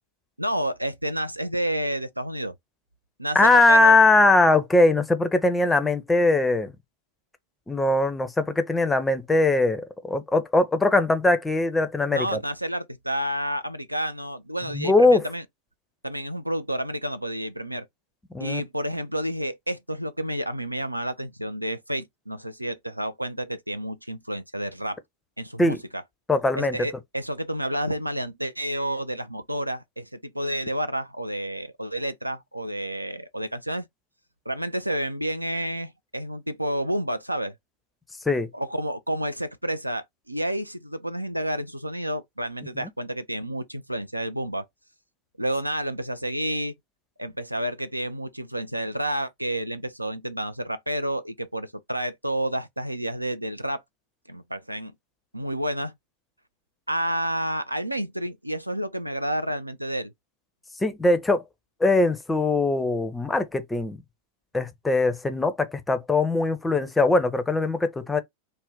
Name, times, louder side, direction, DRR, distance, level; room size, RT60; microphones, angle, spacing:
voice 1, 0.4-2.6 3.2-4.0 12.1-15.4 16.0-17.9 18.4-25.0 25.4-26.0 26.6-33.8 34.5-37.5 38.5-44.6 45.4-46.7 47.2-53.8 54.3-54.9 55.3-55.9 56.9-60.1, right 1 dB, 85° right, 0.3 m, -30 dB
voice 2, 3.3-6.7 7.7-12.4 14.7-15.3 18.3-18.6 25.6-25.8 26.3-26.8 38.3-38.5 60.8-61.4 61.8-64.0 64.5-68.2, left 2 dB, 10° left, 0.5 m, -21 dB
2.5 x 2.1 x 3.5 m
figure-of-eight pair, 90°, 0 cm